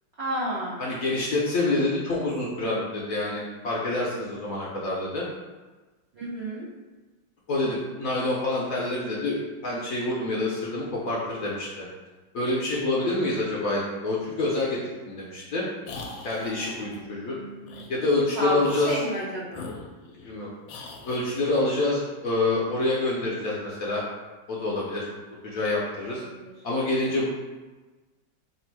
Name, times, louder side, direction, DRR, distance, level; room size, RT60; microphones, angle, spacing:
voice 1, 0.2-0.8 6.2-6.7 16.9-17.9 18.4-19.7 26.0-26.1 26.4-26.5, right 1 dB, 65° right, -7 dB, 0.6 m, -31 dB
voice 2, 0.8-5.3 7.5-9.4 9.6-11.8 12.3-14.8 15.1-15.7 16.2-17.4 17.9-19.0 20.2-20.5 21.0-24.0 24.5-25.1 25.4-26.2 26.6-27.3, left 2 dB, 65° left, -5 dB, 0.9 m, -27 dB
sound 1, 15.8-17.0 17.7-17.9 18.6-19.1 19.5-20.4 20.7-21.3, left 3 dB, 90° left, 1.3 m, -41 dB
3.4 x 2.4 x 4.5 m, 1.2 s
omnidirectional pair, 2.0 m